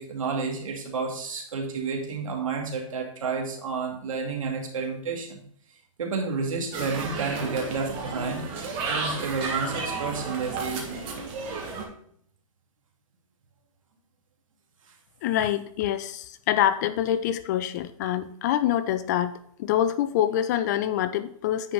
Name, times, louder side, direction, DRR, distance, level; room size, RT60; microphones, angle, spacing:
voice 1, 0.0-5.4 6.0-8.4 8.9-10.9, right 4 dB, 75° right, 1 dB, 2.3 m, -30 dB
sound 1, 6.7-11.8, right 4 dB, 30° right, 1.7 m, -32 dB
voice 2, 15.2-21.7, left 11 dB, 30° left, 13 dB, 0.4 m, -26 dB
9.5 x 4.7 x 4.0 m, 0.64 s
hypercardioid pair, 145°, 17 cm